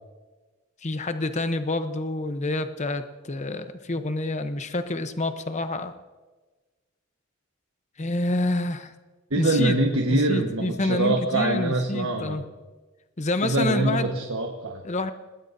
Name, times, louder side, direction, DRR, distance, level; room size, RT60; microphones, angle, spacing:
voice 1, 0.8-5.9 8.0-8.9 9.4-9.8 10.1-12.4 13.2-14.1 14.8-15.1, left 2 dB, 35° left, 9 dB, 0.8 m, -28 dB
voice 2, 9.3-12.4 13.4-14.8, right 2 dB, 75° right, 1 dB, 1.4 m, -24 dB
26.5 x 19.5 x 2.7 m, 1.3 s
head